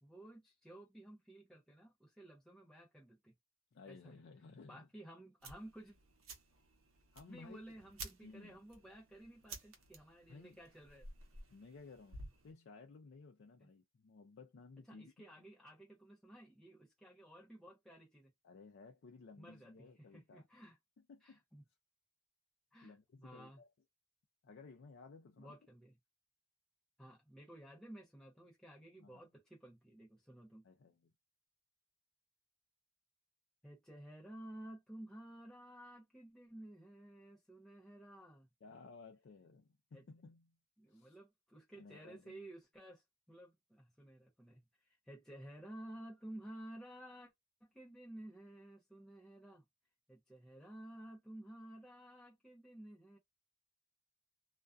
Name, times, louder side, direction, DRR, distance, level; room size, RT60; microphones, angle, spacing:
voice 1, 0.0-3.3 3.9-4.2 4.7-6.0 7.3-11.1 13.6-13.7 14.9-18.3 19.4-20.8 21.2-21.6 22.7-23.6 25.4-26.0 27.0-30.6 33.6-38.5 39.9-40.0 40.8-47.3 47.6-49.6 50.1-53.2, right 1 dB, 5° left, 0.6 m, -54 dB
voice 2, 3.7-4.9 7.1-7.6 8.2-8.5 10.3-10.6 11.5-12.2 12.4-15.1 18.4-20.5 21.1-21.4 22.8-23.7 24.4-25.5 29.0-29.3 30.6-31.1 38.6-40.6 40.9-41.2 41.8-42.5, left 4 dB, 55° left, 0.4 m, -57 dB
sound 1, 5.4-12.5, right 3 dB, 75° right, 0.8 m, -54 dB
2.4 x 2.2 x 2.4 m
head